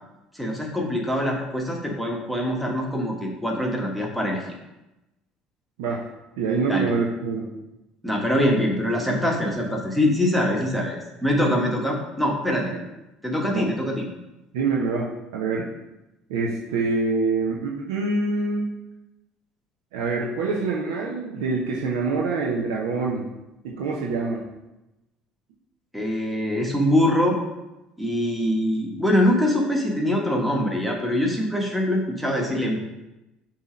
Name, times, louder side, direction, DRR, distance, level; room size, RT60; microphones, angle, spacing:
voice 1, 0.3-4.4 6.7-6.9 8.0-12.7 13.2-14.1 25.9-27.4 28.0-32.8, left 1 dB, ahead, -1 dB, 1.3 m, -23 dB
voice 2, 6.4-7.5 12.7-12.8 13.5-13.7 14.5-15.7 16.3-18.7 19.9-23.2 23.6-24.4, right 4 dB, 85° right, -2 dB, 0.7 m, -25 dB
6.7 x 2.9 x 5.0 m, 0.96 s
supercardioid pair, 80°, 3 cm